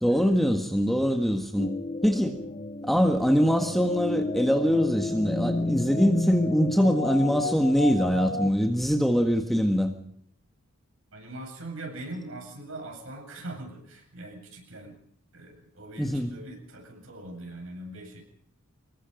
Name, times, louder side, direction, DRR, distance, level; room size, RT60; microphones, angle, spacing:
voice 1, 0.0-1.7 2.0-2.4 2.8-9.9 16.0-16.3, equal, ahead, 4 dB, 1.6 m, -23 dB
sound 1, 1.6-8.5, left 2 dB, 30° left, 0.8 m, -31 dB
voice 2, 11.1-15.0 15.3-18.2, right 1 dB, 60° right, 3 dB, 7.9 m, -41 dB
25.5 x 21.5 x 5.3 m, 0.67 s
head